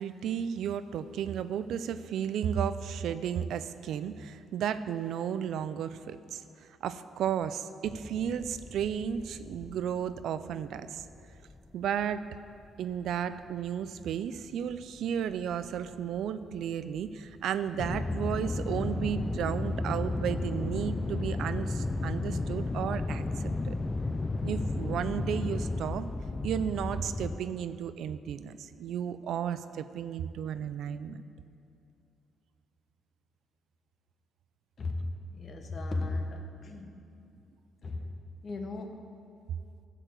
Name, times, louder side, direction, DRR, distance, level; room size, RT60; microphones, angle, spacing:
voice 1, 0.0-11.0 11.7-12.2 12.8-23.7 24.4-26.1 26.4-31.2, right 8 dB, 75° right, 13 dB, 0.4 m, -33 dB
sound 1, 7.9-10.5 10.8-13.2 13.5-16.6 17.0-27.4, left 2 dB, 20° left, 0.5 m, -34 dB
voice 2, 34.8-37.1 37.8-38.1 38.4-39.0, left 2 dB, 45° left, 4 dB, 1.2 m, -36 dB
12.5 x 4.6 x 7.9 m, 2.6 s
cardioid pair, 90°, 0 cm